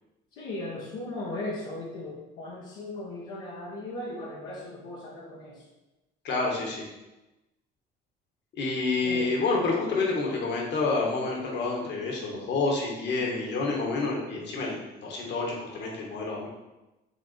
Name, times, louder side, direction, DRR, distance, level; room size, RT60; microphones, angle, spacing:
voice 1, 0.3-5.7 9.0-9.4, left 2 dB, 85° left, -5 dB, 1.3 m, -37 dB
voice 2, 6.2-6.9 8.6-16.5, left 3 dB, 60° left, -1 dB, 1.7 m, -28 dB
6.1 x 3.6 x 4.4 m, 1.0 s
supercardioid pair, 95°, 20 cm